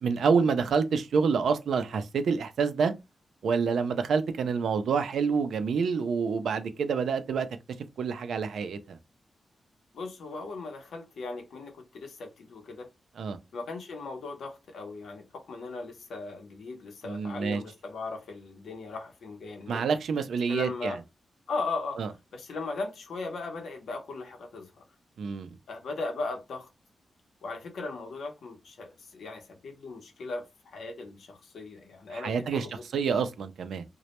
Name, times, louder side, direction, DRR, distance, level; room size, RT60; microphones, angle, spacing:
voice 1, 0.0-2.9 3.4-7.5 8.0-9.0 13.2-13.4 17.0-17.6 19.7-21.0 22.0-22.1 25.2-25.6 32.1-32.7 32.9-33.8, right 5 dB, 90° right, 0.3 m, -27 dB
voice 2, 9.9-12.9 13.5-19.9 20.5-21.0 21.5-22.0 22.3-24.7 25.7-26.7 27.4-32.8, left 3 dB, 90° left, 0.7 m, -38 dB
2.1 x 2.0 x 2.8 m
wide cardioid pair, 130°, 0 cm